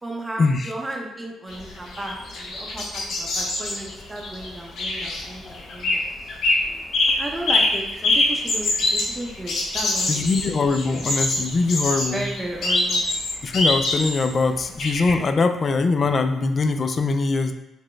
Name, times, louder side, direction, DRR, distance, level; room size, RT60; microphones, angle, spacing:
voice 1, 0.0-6.0 7.2-10.4 12.1-13.0, right 1 dB, 15° right, -1 dB, 0.6 m, -34 dB
sound 1, 1.5-6.0 6.3-6.6 6.9-14.3 14.8-15.1, left 2 dB, 65° left, 0.8 m, -24 dB
voice 2, 10.1-12.3 13.4-17.5, left 3 dB, 40° left, 8 dB, 0.3 m, -22 dB
4.0 x 2.1 x 3.2 m, 0.92 s
cardioid pair, 90°, 0 cm